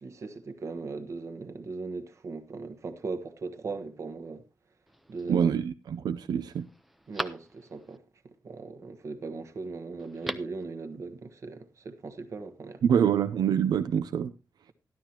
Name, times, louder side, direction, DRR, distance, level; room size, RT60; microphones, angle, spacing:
voice 1, 0.0-4.4 5.1-5.5 7.1-8.0 8.4-12.8, right 4 dB, 45° right, 1.3 m, -38 dB
Telephone, 4.9-5.4 6.0-6.1 6.5-8.0 10.0-10.6 10.9-11.0, equal, ahead, 0.6 m, -39 dB
voice 2, 5.3-6.7 12.8-14.3, right 8 dB, 80° right, 0.6 m, -25 dB
13.5 x 12.0 x 2.9 m
wide cardioid pair, 175°, 7 cm